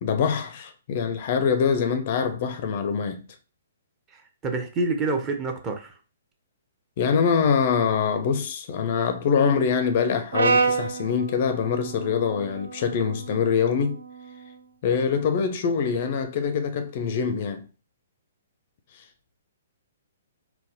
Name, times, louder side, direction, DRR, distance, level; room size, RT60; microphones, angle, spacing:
voice 1, 0.0-3.3 7.0-14.0 14.8-17.6, left 6 dB, 40° left, 0.4 m, -24 dB
voice 2, 4.1-6.0, right 3 dB, 20° right, 0.6 m, -28 dB
Brass instrument, 10.3-14.6, right 4 dB, 65° right, 0.3 m, -28 dB
3.9 x 2.1 x 2.8 m
figure-of-eight pair, 120°, 0 cm